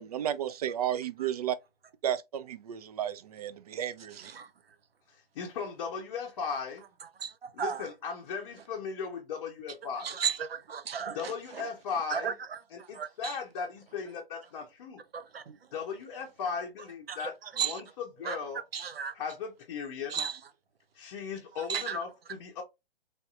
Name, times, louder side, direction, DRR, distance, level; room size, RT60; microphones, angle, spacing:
voice 1, 0.0-1.6 2.0-4.3, right 10 dB, 40° right, 0.4 m, -33 dB
voice 2, 4.1-4.5 7.2-7.9 10.0-11.7 12.1-12.6 12.9-13.4 15.1-15.6 17.1-17.2 17.6-17.8 18.2-18.4 18.7-19.1 20.1-20.4 21.6-22.0, right 7 dB, 70° right, 0.7 m, -34 dB
voice 3, 5.1-6.8 7.5-10.2 11.1-12.3 12.7-15.0 15.7-18.6 19.1-20.2 21.0-22.6, left 6 dB, 35° left, 0.7 m, -37 dB
3.4 x 2.6 x 2.5 m
figure-of-eight pair, 130°, 31 cm